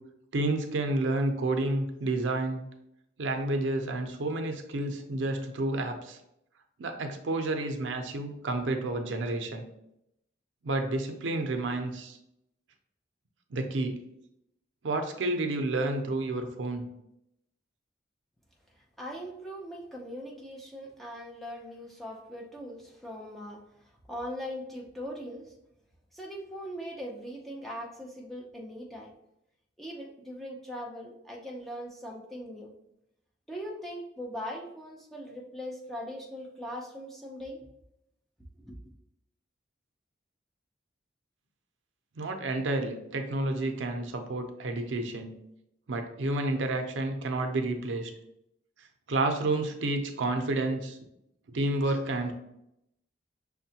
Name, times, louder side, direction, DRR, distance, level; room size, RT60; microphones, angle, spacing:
voice 1, 0.3-2.6 3.2-6.2 6.8-9.6 10.6-12.2 13.5-14.0 14.8-16.8 42.2-45.3 45.9-48.1 49.1-51.0 51.5-52.3, right 2 dB, 85° right, 5 dB, 0.5 m, -30 dB
voice 2, 19.0-23.6 24.1-25.5 26.1-29.1 29.8-32.7 33.5-37.6 38.6-38.8, equal, ahead, -2 dB, 0.5 m, -40 dB
5.9 x 2.1 x 2.7 m, 0.81 s
head